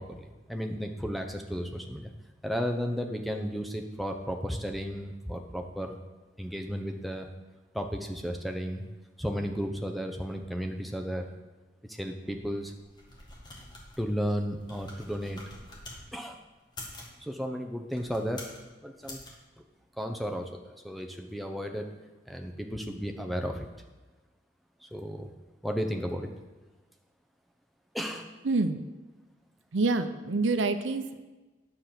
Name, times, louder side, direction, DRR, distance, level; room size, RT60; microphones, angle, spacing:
voice 1, 0.0-2.1 2.4-6.0 6.4-7.3 7.7-8.9 9.2-11.3 11.9-12.7 14.0-15.4 16.1-16.4 17.2-18.4 18.8-19.2 20.0-22.0 22.3-23.7 24.9-25.3 25.6-26.3 27.9-28.3, equal, ahead, 4 dB, 0.7 m, -34 dB
sound 1, 12.8-16.0 16.6-17.2 17.8-18.6 19.0-19.3, left 1 dB, 25° left, 1.7 m, -46 dB
voice 2, 28.4-28.8 29.7-31.2, right 3 dB, 90° right, 10 dB, 0.7 m, -27 dB
10.0 x 6.8 x 5.9 m, 1.2 s
head